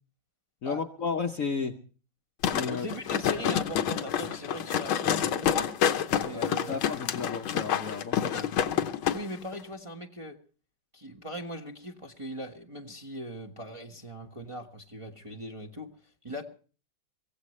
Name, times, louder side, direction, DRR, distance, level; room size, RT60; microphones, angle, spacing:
voice 1, 0.6-1.8 2.5-2.9 6.3-8.5, left 5 dB, 55° left, 5 dB, 1.0 m, -33 dB
sound 1, 2.4-9.2 9.5-9.6, left 9 dB, 85° left, 1.8 m, -28 dB
voice 2, 2.7-5.7 6.1-6.8 9.1-10.4 10.9-16.4, equal, 20° right, 1 dB, 1.0 m, -39 dB
23.5 x 16.5 x 3.2 m, 0.39 s
omnidirectional pair, 2.2 m